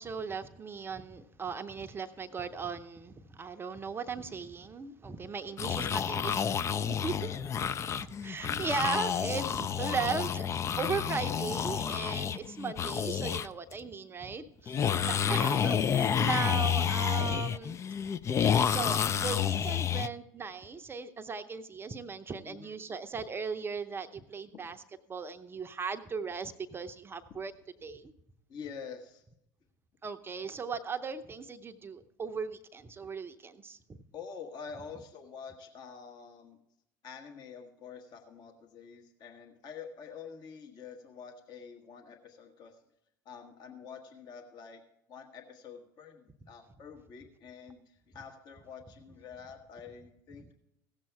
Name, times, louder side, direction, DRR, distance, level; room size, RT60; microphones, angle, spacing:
voice 1, 0.0-7.5 7.9-10.4 10.8-14.7 15.0-17.8 18.7-24.8 25.1-27.5 27.8-28.1 30.0-34.0, right 5 dB, 25° right, 8 dB, 0.6 m, -37 dB
sound 1, 5.6-13.5 13.7-13.8 14.7-20.1, left 8 dB, 30° left, 0.4 m, -30 dB
voice 2, 14.7-15.1 22.5-22.7 24.5-24.6 28.5-29.2 34.1-36.6 37.0-42.8 43.2-44.8 45.1-50.5, left 6 dB, 45° left, 4 dB, 1.3 m, -47 dB
16.0 x 7.4 x 4.5 m, 0.79 s
hypercardioid pair, 75°, 10 cm